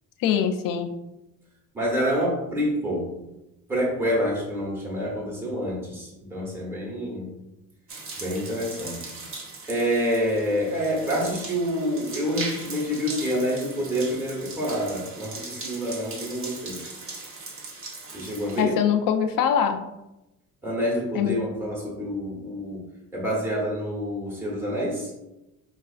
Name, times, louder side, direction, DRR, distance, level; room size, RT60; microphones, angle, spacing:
voice 1, 0.2-0.9 18.6-19.8 21.1-21.4, left 8 dB, 70° left, 7 dB, 0.5 m, -23 dB
voice 2, 1.7-3.2 3.7-7.3 8.2-9.1 9.7-16.8 18.1-18.8 20.6-22.8 23.1-25.1, equal, 5° right, -4 dB, 1.0 m, -27 dB
sound 1, 7.9-18.6, right 3 dB, 40° right, 0.7 m, -39 dB
4.7 x 2.4 x 2.4 m, 0.95 s
cardioid pair, 120°, 35 cm